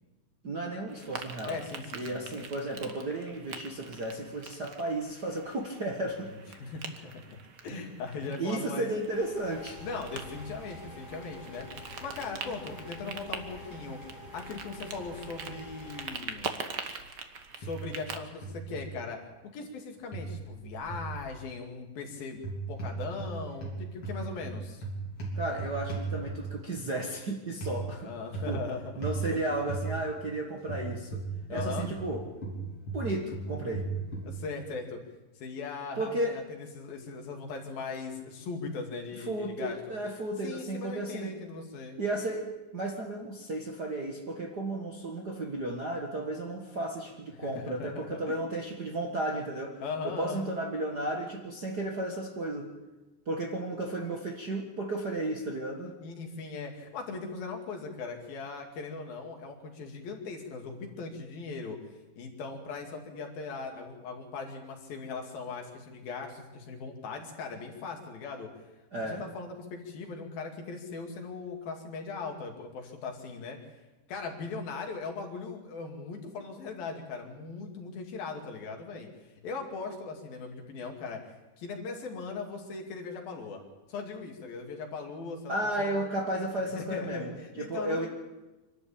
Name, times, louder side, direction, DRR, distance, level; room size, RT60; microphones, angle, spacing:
voice 1, 0.4-1.6 1.9-6.3 8.4-9.8 25.3-28.1 28.5-28.6 29.0-31.2 31.5-32.3 32.9-33.9 35.9-36.4 39.3-41.3 42.0-49.8 50.0-52.7 53.2-55.9 68.9-69.2 85.5-87.3 87.6-88.1, right 1 dB, 45° right, 0 dB, 1.3 m, -33 dB
sound 1, 0.9-18.2, right 5 dB, 90° right, 0.9 m, -44 dB
voice 2, 1.5-2.2 6.5-7.4 7.6-8.9 9.8-14.0 14.3-16.5 17.6-24.9 28.0-28.9 29.3-29.4 31.5-31.9 34.2-35.0 35.4-39.8 40.4-42.0 47.4-48.3 49.8-50.5 56.0-61.8 62.2-68.5 69.0-73.8 74.1-79.1 79.4-86.0 86.7-88.1, left 4 dB, 80° left, 2 dB, 4.3 m, -39 dB
sound 2, 9.1-16.1, left 1 dB, 25° left, 7.1 m, -47 dB
sound 3, 17.6-18.1 18.4-18.9 20.1-21.1 22.3-23.3 23.6-26.6 27.6-27.8 28.3-28.6 29.0-29.2 29.7-29.9 30.7-32.1 32.4-34.3, right 3 dB, 40° left, 4.4 m, -36 dB
25.5 x 12.5 x 8.6 m, 1.1 s
omnidirectional pair, 4.1 m